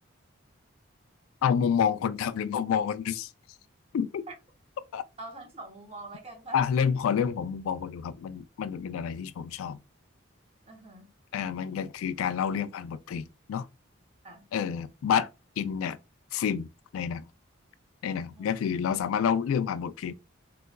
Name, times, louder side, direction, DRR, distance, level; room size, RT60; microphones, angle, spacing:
voice 1, 1.4-3.3 3.9-4.3 4.9-5.0 6.5-9.8 11.3-13.7 14.5-15.3 15.6-16.0 16.3-16.7 16.9-17.2 18.0-20.1, left 7 dB, 85° left, 0.3 m, -28 dB
voice 2, 5.2-6.6 10.7-11.1 14.2-14.5 18.3-18.6, right 2 dB, 30° right, 0.8 m, -44 dB
3.9 x 2.3 x 2.2 m
head